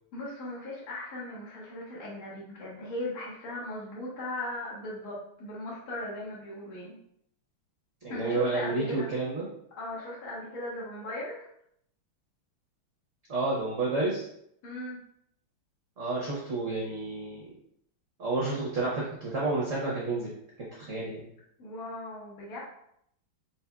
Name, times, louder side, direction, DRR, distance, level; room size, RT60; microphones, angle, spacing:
voice 1, 0.1-7.0 8.1-9.1 9.8-11.5 14.6-15.0 21.6-22.6, left 1 dB, 50° left, -8 dB, 1.6 m, -38 dB
voice 2, 8.0-9.5 13.3-14.3 16.0-17.6 18.2-20.3 20.6-21.3, right 3 dB, 60° right, -5 dB, 0.8 m, -30 dB
4.2 x 4.2 x 2.3 m, 0.72 s
omnidirectional pair, 2.4 m